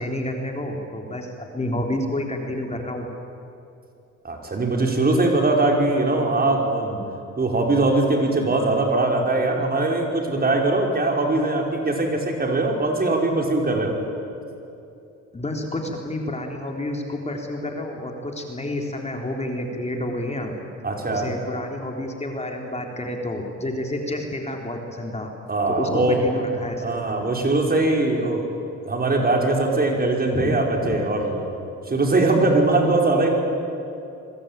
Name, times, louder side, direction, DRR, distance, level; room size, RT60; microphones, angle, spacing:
voice 1, 0.0-3.1 15.3-20.5 21.1-25.3 25.7-27.3 30.3-30.5 30.8-31.0, left 1 dB, 20° left, 2 dB, 3.6 m, -29 dB
voice 2, 4.2-7.0 7.4-14.0 20.8-21.3 25.5-26.2 26.8-28.5 28.8-31.5 31.9-33.3, right 2 dB, 30° right, 1 dB, 5.5 m, -21 dB
27.0 x 22.5 x 9.1 m, 2.7 s
cardioid pair, 90°, 30 cm